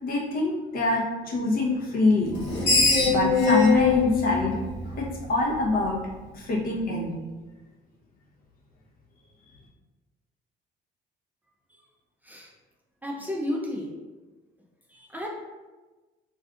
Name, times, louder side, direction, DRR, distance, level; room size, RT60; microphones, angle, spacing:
voice 1, 0.0-6.0 6.3-7.1, left 2 dB, 60° left, -3 dB, 0.9 m, -25 dB
Screech, 2.3-5.5, left 4 dB, 85° left, 0.8 m, -23 dB
voice 2, 13.0-13.9 14.9-15.3, left 1 dB, 10° right, -2 dB, 0.4 m, -32 dB
2.6 x 2.4 x 3.5 m, 1.2 s
cardioid pair, 110°, 17 cm